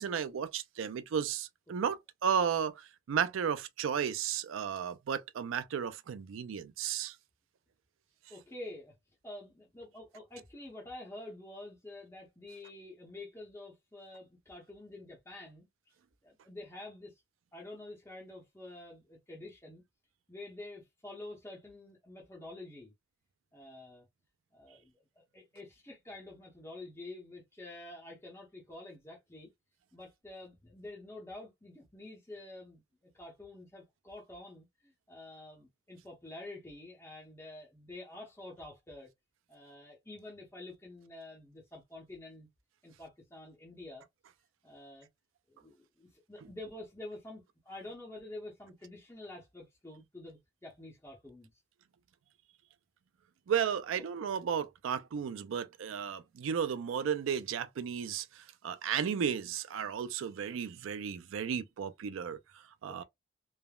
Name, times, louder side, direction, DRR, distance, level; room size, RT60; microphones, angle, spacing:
voice 1, 0.0-7.1 53.5-62.4 62.8-63.0, right 7 dB, 80° right, 0.4 m, -34 dB
voice 2, 8.3-8.9 9.2-15.7 16.2-17.2 17.5-19.8 20.3-22.9 23.5-24.1 24.5-29.5 29.9-39.1 39.5-42.5 42.8-44.0 44.6-45.1 45.5-51.5 53.9-54.0 62.8-63.0, left 2 dB, 15° left, 0.7 m, -48 dB
3.3 x 2.0 x 2.2 m
head